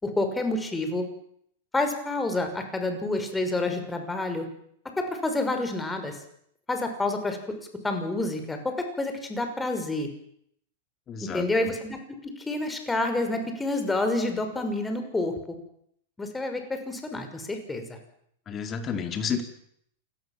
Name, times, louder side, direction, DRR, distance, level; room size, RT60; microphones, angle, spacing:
voice 1, 0.0-1.0 1.7-4.5 5.0-6.2 6.7-7.4 7.8-10.1 11.2-15.3 16.2-18.0, left 2 dB, 10° left, 6 dB, 6.0 m, -28 dB
voice 2, 11.1-11.5 18.5-19.4, left 6 dB, 30° left, 7 dB, 4.4 m, -30 dB
28.5 x 19.0 x 7.6 m, 0.70 s
hypercardioid pair, 100°, 0 cm